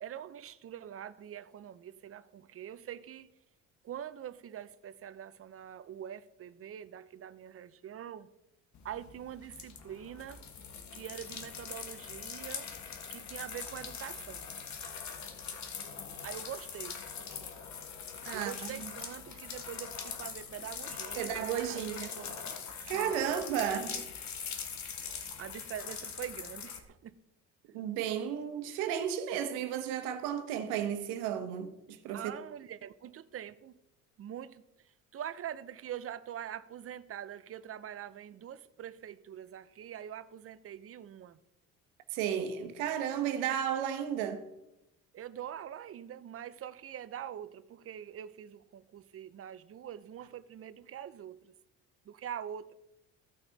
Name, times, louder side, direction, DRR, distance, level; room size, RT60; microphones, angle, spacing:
voice 1, 0.0-3.3 3.8-8.3 8.8-10.4 10.9-12.7 13.1-14.5 16.2-17.0 18.3-21.3 21.7-22.6 22.8-24.1 25.4-27.2 32.1-33.8 34.2-41.4 45.1-51.5 52.0-52.8, right 10 dB, 40° right, 0.7 m, -44 dB
sound 1, 8.7-26.8, left 6 dB, 55° left, 1.5 m, -42 dB
voice 2, 18.2-18.9 21.2-22.1 22.9-24.0 27.7-32.3 42.1-44.5, right 9 dB, 85° right, 1.2 m, -33 dB
15.5 x 5.7 x 4.1 m
supercardioid pair, 75°, 35 cm